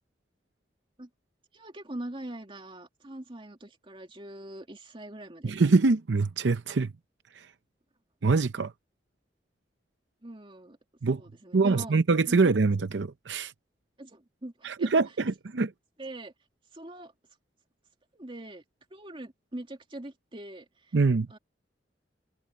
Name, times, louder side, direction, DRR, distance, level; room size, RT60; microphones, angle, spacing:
voice 1, 1.5-5.5 10.2-10.8 11.1-11.9 12.3-12.4 14.0-15.0 16.0-16.3 16.7-17.1 18.1-18.6 18.9-20.9 21.3-21.4, right 1 dB, 30° right, 2.4 m, -42 dB
voice 2, 5.4-6.9 8.2-8.7 11.0-11.2 11.5-13.5 14.6-15.7 20.9-21.3, right 4 dB, 75° right, 0.6 m, -24 dB
head